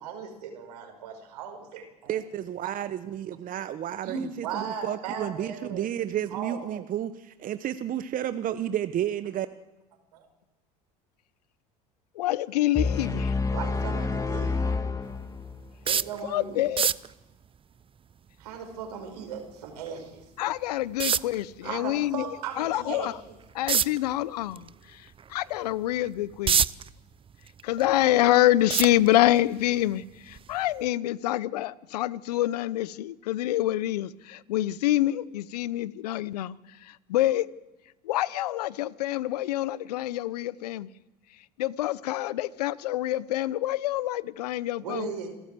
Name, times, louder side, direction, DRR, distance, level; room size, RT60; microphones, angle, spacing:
voice 1, 0.0-2.1 2.6-2.7 4.0-5.8 6.3-6.6 10.1-10.2 13.0-13.1 13.5-14.7 15.8-16.7 18.4-20.2 21.6-23.1 44.8-45.3, right 6 dB, 80° right, 5.7 m, -37 dB
voice 2, 2.1-4.1 4.8-7.1 7.4-9.5, right 11 dB, 45° right, 1.0 m, -31 dB
voice 3, 12.2-13.3 16.3-16.9 20.4-22.2 22.6-23.1 23.5-24.7 25.3-26.6 27.6-36.6 37.1-37.5 38.0-40.9 41.6-45.1, left 14 dB, 80° left, 0.8 m, -26 dB
sound 1, 12.7-15.7, left 4 dB, 15° left, 2.3 m, -28 dB
sound 2, 15.9-16.2 16.7-17.1 19.9-20.0 21.0-21.4 23.7-24.0 24.5-24.7 25.2-25.3 26.1-26.9 27.3-28.1 28.7-29.4 30.3-30.5 30.9-31.0, right 7 dB, 25° right, 0.6 m, -24 dB
27.0 x 14.0 x 7.8 m
hypercardioid pair, 75°, 20 cm